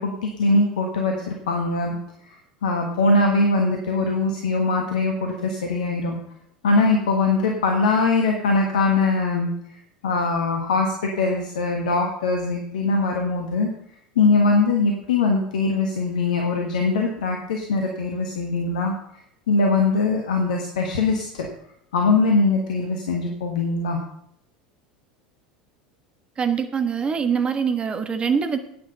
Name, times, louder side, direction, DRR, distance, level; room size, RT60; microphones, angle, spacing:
voice 1, 0.0-2.0 2.6-6.2 6.6-9.5 10.0-13.7 14.1-18.9 19.5-21.5 21.9-24.0, left 3 dB, 65° left, 2 dB, 1.6 m, -21 dB
voice 2, 26.4-28.6, right 6 dB, 20° right, 8 dB, 1.4 m, -23 dB
9.6 x 9.4 x 5.5 m, 0.71 s
figure-of-eight pair, 75°, 4 cm